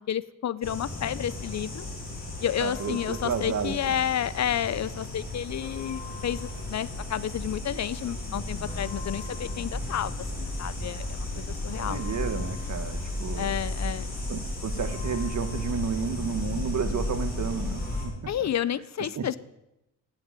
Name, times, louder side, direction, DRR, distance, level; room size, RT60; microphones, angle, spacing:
voice 1, 0.0-1.9 2.4-12.2 13.4-14.1 18.3-19.4, left 10 dB, 55° left, 19 dB, 0.5 m, -31 dB
sound 1, 0.6-18.1, left 1 dB, 25° left, 5.2 m, -34 dB
voice 2, 2.6-4.0 11.8-13.5 14.3-18.5 19.1-19.4, right 6 dB, 55° right, 10 dB, 1.4 m, -32 dB
17.0 x 7.5 x 9.0 m, 0.93 s
wide cardioid pair, 155°, 34 cm